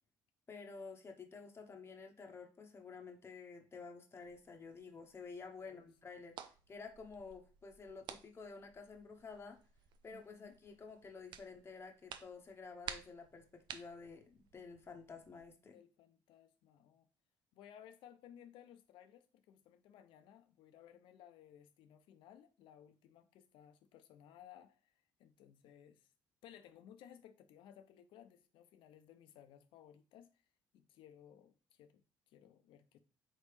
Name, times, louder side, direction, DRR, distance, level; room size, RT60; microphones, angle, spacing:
voice 1, 0.5-6.4 6.7-9.6 10.0-15.8, left 4 dB, 30° left, 0.8 m, -51 dB
sound 1, 4.2-15.5, right 8 dB, 65° right, 0.4 m, -55 dB
voice 2, 10.1-10.6 15.6-17.1 17.5-26.1 26.4-30.4 30.7-33.0, left 10 dB, 75° left, 0.5 m, -60 dB
4.0 x 3.3 x 3.2 m
supercardioid pair, 75°, 9 cm